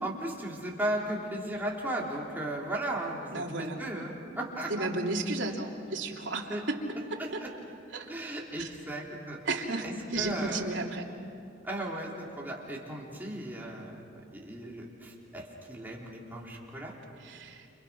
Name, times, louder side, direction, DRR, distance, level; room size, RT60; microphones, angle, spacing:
voice 1, 0.0-4.9 6.5-6.6 7.2-7.5 8.1-9.4 9.8-10.7 11.6-16.9, right 1 dB, 10° right, -3 dB, 3.7 m, -36 dB
voice 2, 3.3-3.8 4.7-6.8 7.9-8.1 8.6-8.7 9.4-11.0 17.2-17.6, right 2 dB, 75° right, -1 dB, 3.0 m, -33 dB
30.0 x 27.5 x 5.9 m, 2.6 s
head